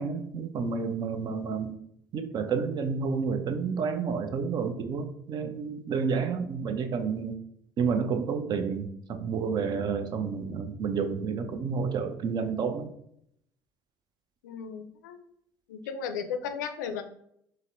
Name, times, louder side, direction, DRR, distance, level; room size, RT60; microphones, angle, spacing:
voice 1, 0.0-1.7 2.1-7.4 7.8-12.9, right 5 dB, 50° right, 8 dB, 0.5 m, -30 dB
voice 2, 14.4-15.2 15.7-17.0, left 6 dB, 85° left, 8 dB, 0.4 m, -35 dB
4.0 x 2.1 x 2.5 m, 0.71 s
hypercardioid pair, 65°, 10 cm